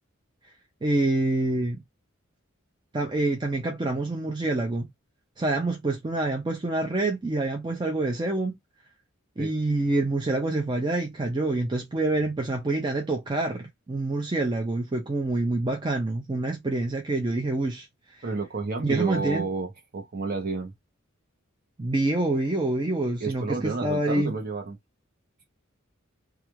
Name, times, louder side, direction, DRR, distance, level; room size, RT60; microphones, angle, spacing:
voice 1, 0.8-1.8 2.9-4.9 5.4-8.6 9.4-17.9 18.8-19.5 21.8-24.3, right 2 dB, 20° right, 0.4 m, -26 dB
voice 2, 18.2-20.7 23.2-24.8, right 3 dB, 45° right, 0.8 m, -30 dB
2.4 x 2.4 x 3.0 m
head